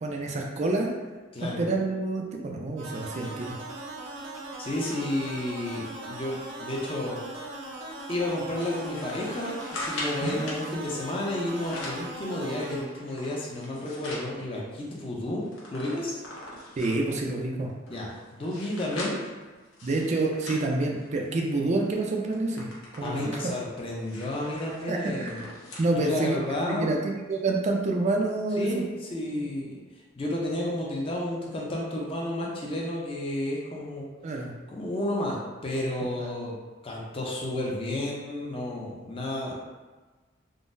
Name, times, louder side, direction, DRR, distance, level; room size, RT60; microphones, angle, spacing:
voice 1, 0.0-0.9 1.4-3.6 10.2-10.4 16.8-17.7 19.8-22.7 23.0-23.3 24.9-25.5 25.8-28.8 29.4-29.5 34.2-34.5, right 2 dB, 35° right, 1 dB, 0.4 m, -28 dB
sound 1, 2.8-12.8, right 2 dB, 75° right, 0.6 m, -40 dB
voice 2, 4.6-7.2 8.1-15.4 15.7-16.2 17.9-19.2 23.0-25.4 25.9-26.9 28.6-29.8 30.2-34.0 34.7-36.6 36.8-39.5, left 1 dB, 30° left, -3 dB, 0.5 m, -31 dB
sound 2, 8.6-10.7 11.4-12.1 12.6-14.3 14.8-14.9 15.1-17.1 17.7-21.4 21.8-22.0 22.3-25.9 26.3-26.4 27.3-27.4, left 1 dB, 85° left, 0.7 m, -41 dB
3.7 x 2.0 x 2.5 m, 1.3 s
head